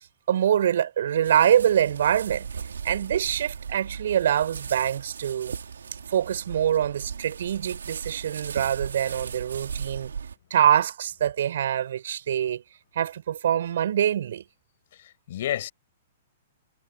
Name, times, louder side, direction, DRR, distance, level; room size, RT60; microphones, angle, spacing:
voice 1, 0.3-2.5 2.8-5.6 6.1-10.1 10.5-12.6 12.9-14.4, right 10 dB, 70° right, 7.6 m, -24 dB
sound 1, 1.2-10.4, right 6 dB, 90° right, 4.5 m, -37 dB
voice 2, 14.9-15.7, left 12 dB, 65° left, 6.8 m, -31 dB
hypercardioid pair, 125°, 0 cm